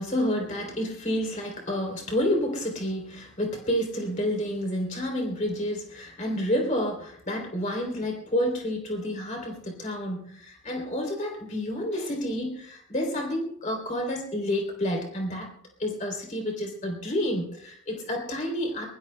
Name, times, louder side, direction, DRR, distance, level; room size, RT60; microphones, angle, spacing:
voice 1, 0.0-15.5 15.8-18.9, left 1 dB, 35° left, 1 dB, 3.2 m, -29 dB
23.5 x 20.0 x 2.2 m, 0.67 s
head